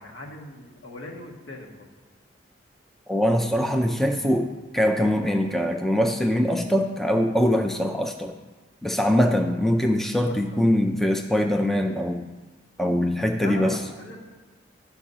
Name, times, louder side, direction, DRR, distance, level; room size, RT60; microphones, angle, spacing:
voice 1, 0.0-1.7 10.3-10.7 13.4-14.3, left 1 dB, 75° left, -1 dB, 1.4 m, -40 dB
voice 2, 3.1-8.3 8.8-12.2 12.8-13.8, equal, ahead, 3 dB, 0.4 m, -23 dB
9.8 x 4.6 x 5.5 m, 1.3 s
head